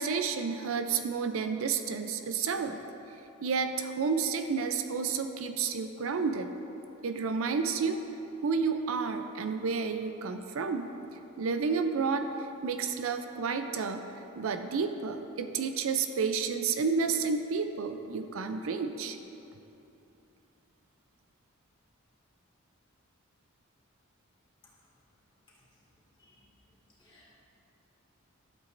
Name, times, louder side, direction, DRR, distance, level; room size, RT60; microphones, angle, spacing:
voice 1, 0.0-2.8 3.4-6.5 7.0-8.0 8.4-10.9 11.4-14.1 14.4-19.2, right 5 dB, 70° right, 7 dB, 0.4 m, -31 dB
voice 2, 27.0-27.4, left 1 dB, 25° left, -6 dB, 2.1 m, -62 dB
12.5 x 8.3 x 2.6 m, 3.0 s
head